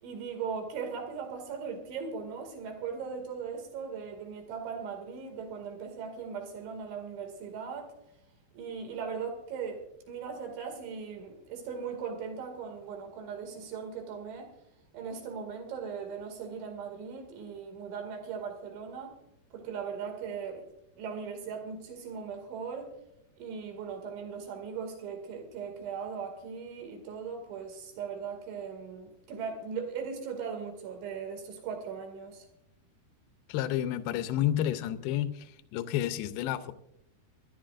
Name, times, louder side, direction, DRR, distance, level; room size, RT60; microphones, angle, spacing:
voice 1, 0.0-7.9 8.5-14.5 14.9-19.2 19.5-20.7 21.0-22.9 23.4-32.5, right 6 dB, 80° right, 4 dB, 4.6 m, -39 dB
voice 2, 33.5-36.7, left 12 dB, 85° left, 10 dB, 2.2 m, -30 dB
26.0 x 11.5 x 2.5 m, 0.78 s
omnidirectional pair, 5.3 m